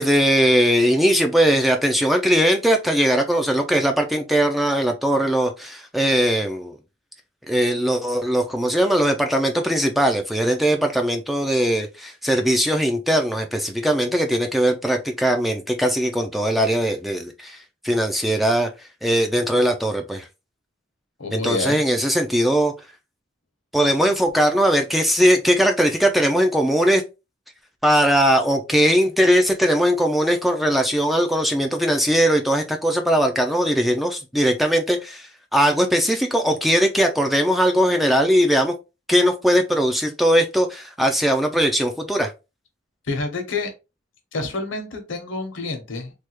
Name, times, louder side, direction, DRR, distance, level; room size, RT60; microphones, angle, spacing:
voice 1, 0.0-6.8 7.5-18.7 19.0-20.3 21.3-22.7 23.7-27.0 27.8-38.7 39.1-42.3, equal, ahead, 4 dB, 0.3 m, -20 dB
voice 2, 21.2-21.8 43.1-43.7 44.3-46.1, left 3 dB, 70° left, 5 dB, 0.9 m, -28 dB
3.3 x 2.3 x 3.0 m, 0.27 s
head